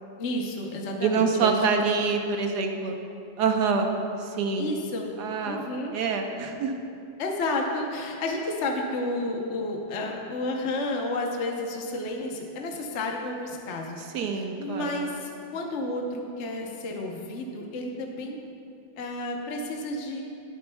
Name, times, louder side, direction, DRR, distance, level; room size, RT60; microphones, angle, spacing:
voice 1, 0.2-1.6 4.6-5.1 5.4-5.9 7.2-14.0 14.3-18.4 19.0-20.2, left 2 dB, 50° left, 0 dB, 0.9 m, -31 dB
voice 2, 1.0-3.0 3.4-3.9 4.2-4.7 5.2-5.6 5.9-6.7 14.1-15.1, right 5 dB, 65° right, 4 dB, 1.3 m, -26 dB
20.0 x 8.7 x 2.3 m, 2.6 s
omnidirectional pair, 2.1 m